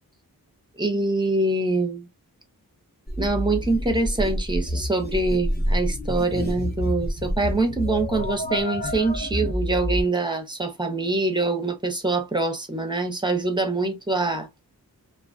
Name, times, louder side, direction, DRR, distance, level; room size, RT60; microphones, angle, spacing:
voice 1, 0.8-2.1 3.2-14.5, right 2 dB, 10° right, 0.6 m, -24 dB
sound 1, 3.1-10.0, equal, 25° left, 0.8 m, -28 dB
2.4 x 2.3 x 2.4 m
wide cardioid pair, 65°, 37 cm